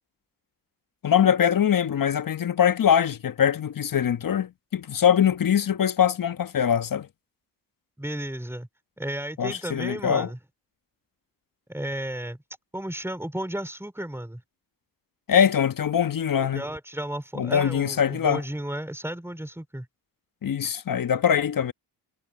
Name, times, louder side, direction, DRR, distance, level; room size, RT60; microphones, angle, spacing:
voice 1, 1.0-7.1 9.4-10.3 15.3-16.6 17.3-18.4 20.4-21.7, left 8 dB, 50° left, 1.4 m, -22 dB
voice 2, 8.0-8.7 9.0-10.4 11.7-12.4 12.7-14.4 16.4-19.9, right 1 dB, 5° right, 4.7 m, -33 dB
supercardioid pair, 60°, 44 cm